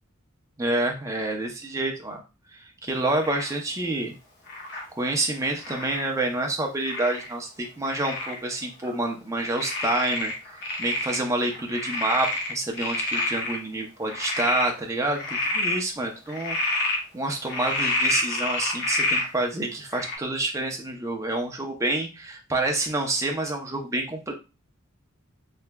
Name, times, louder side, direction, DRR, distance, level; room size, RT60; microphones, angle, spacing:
voice 1, 0.6-2.2 2.5-4.1 4.9-10.3 10.8-24.3, right 2 dB, 15° right, 1 dB, 0.5 m, -28 dB
Frog, 3.2-3.5 4.5-4.8 5.6-6.1 6.9-7.3 7.8-8.4 8.8-8.9 9.6-11.2 11.5-13.6 14.0-14.7 15.1-15.8 16.3-17.0 17.5-19.3 19.9-20.2, left 2 dB, 55° left, 0.9 m, -28 dB
3.3 x 2.9 x 2.2 m, 0.29 s
head